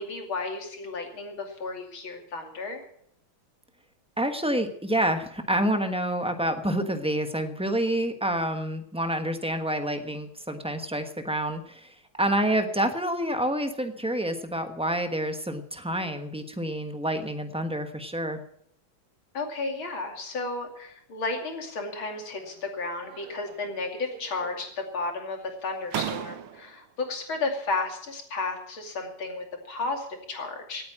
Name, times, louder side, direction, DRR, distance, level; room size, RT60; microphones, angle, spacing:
voice 1, 0.0-2.9 19.3-30.9, left 3 dB, 70° left, 3 dB, 3.4 m, -33 dB
voice 2, 4.2-18.4, right 1 dB, 5° right, 6 dB, 0.7 m, -28 dB
sound 1, 22.0-22.6 23.0-23.8 24.1-24.8 25.5-25.6 25.9-26.9, right 11 dB, 75° right, 1.7 m, -38 dB
17.5 x 9.5 x 7.3 m, 0.68 s
omnidirectional pair, 2.4 m